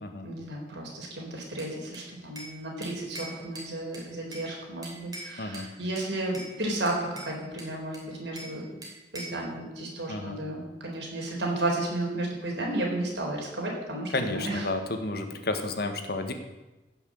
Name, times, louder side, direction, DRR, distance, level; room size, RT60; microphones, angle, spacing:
voice 1, 0.2-8.8 9.1-14.7, right 1 dB, 70° right, -1 dB, 4.3 m, -33 dB
Bell / Glass, 1.6-2.6 2.8-4.5 4.8-5.7 6.0-6.5 6.9-8.6 8.8-9.4, right 2 dB, 20° right, 3.2 m, -43 dB
voice 2, 10.1-10.4 14.1-16.3, left 2 dB, 60° left, 6 dB, 1.5 m, -31 dB
15.5 x 6.4 x 7.7 m, 1.1 s
head